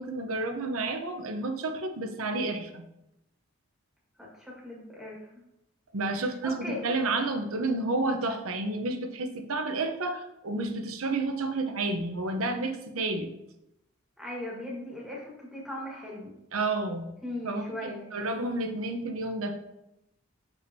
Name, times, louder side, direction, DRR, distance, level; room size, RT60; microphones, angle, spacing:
voice 1, 0.0-2.8 5.9-13.3 16.5-17.1 17.4-19.6, right 2 dB, 85° right, 6 dB, 0.8 m, -30 dB
voice 2, 4.2-5.3 6.1-6.8 14.2-16.3 17.2-18.1, left 1 dB, ahead, -4 dB, 1.4 m, -39 dB
6.1 x 5.7 x 2.7 m, 0.85 s
head